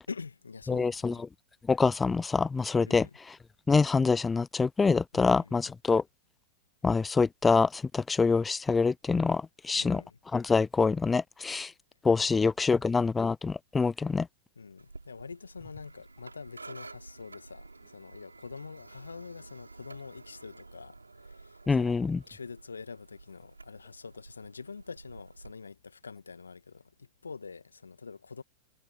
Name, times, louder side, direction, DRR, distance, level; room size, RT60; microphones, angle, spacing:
voice 1, 0.1-1.2 2.8-3.2 5.1-5.7 9.7-10.2 12.3-13.1 14.5-22.0 22.3-28.4, left 5 dB, 80° left, 1.6 m, -45 dB
voice 2, 0.7-1.2 1.7-3.1 3.7-6.0 6.8-10.0 10.3-11.7 12.0-14.3 21.7-22.2, left 4 dB, 15° left, 0.3 m, -25 dB
sound 1, 14.8-25.5, right 3 dB, 85° right, 4.0 m, -51 dB
figure-of-eight pair, 95°, 0 cm